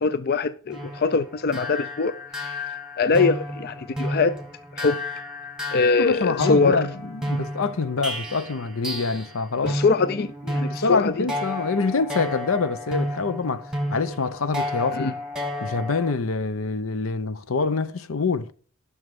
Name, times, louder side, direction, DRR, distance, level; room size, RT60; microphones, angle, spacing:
voice 1, 0.0-2.6 3.0-4.4 4.7-5.0 5.7-6.8 9.6-11.3 14.9-15.1, left 4 dB, 50° left, 0.4 m, -23 dB
sound 1, 0.7-9.4 9.7-16.1, left 1 dB, 5° right, 1.6 m, -32 dB
voice 2, 6.0-9.8 10.7-15.1 15.6-18.5, left 4 dB, 80° left, 0.7 m, -25 dB
11.0 x 6.4 x 5.3 m
head